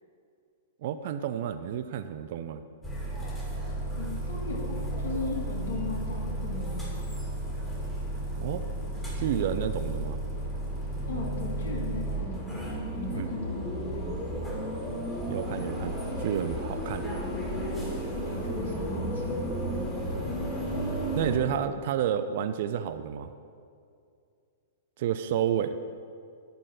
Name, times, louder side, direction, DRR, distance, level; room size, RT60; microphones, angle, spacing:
voice 1, 0.8-2.6 8.4-8.6 9.1-10.2 13.1-13.3 15.2-17.0 21.2-23.3 25.0-25.8, right 9 dB, 55° right, 10 dB, 0.4 m, -30 dB
sound 1, 2.8-21.4, right 1 dB, 10° left, 2.2 m, -33 dB
voice 2, 4.0-7.0 11.1-14.2 18.1-20.0, left 3 dB, 80° left, -1 dB, 2.4 m, -37 dB
11.0 x 4.0 x 7.8 m, 2.3 s
hypercardioid pair, 135°, 0 cm